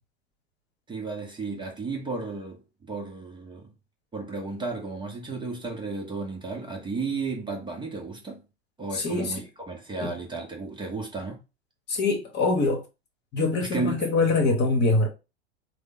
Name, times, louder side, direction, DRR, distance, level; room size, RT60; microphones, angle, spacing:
voice 1, 0.9-3.7 4.1-8.4 8.8-9.4 9.7-11.4 13.6-14.0, right 3 dB, 15° right, 0.9 m, -33 dB
voice 2, 8.9-9.4 10.0-10.1 11.9-12.8 13.3-15.1, left 3 dB, 30° left, 1.1 m, -24 dB
3.3 x 2.2 x 3.8 m
hypercardioid pair, 95°, 33 cm